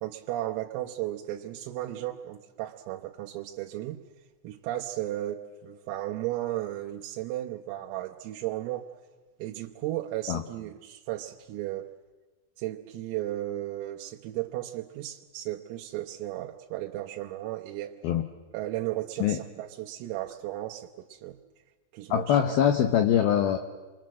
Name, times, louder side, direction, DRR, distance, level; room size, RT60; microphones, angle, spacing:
voice 1, 0.0-4.0 4.4-8.9 9.4-11.9 12.6-18.0 18.5-21.4 21.9-22.6, right 14 dB, 85° right, 1 dB, 3.7 m, -35 dB
voice 2, 22.1-23.6, left 9 dB, 85° left, 8 dB, 2.1 m, -23 dB
28.5 x 22.5 x 7.6 m, 1.3 s
omnidirectional pair, 5.9 m